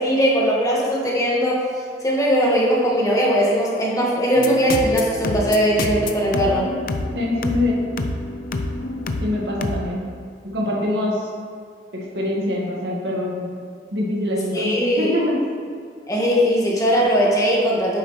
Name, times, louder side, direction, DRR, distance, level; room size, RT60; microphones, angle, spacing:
voice 1, 0.0-1.6 2.0-6.7 14.5-15.1 16.1-18.0, equal, 20° left, -4 dB, 1.5 m, -19 dB
sound 1, 4.4-9.8, left 2 dB, 50° left, 0.5 m, -28 dB
voice 2, 7.1-7.8 9.2-10.0 10.4-11.3 11.9-13.6 13.9-15.3, left 1 dB, 65° right, -3 dB, 1.7 m, -24 dB
9.7 x 7.2 x 3.1 m, 2.2 s
head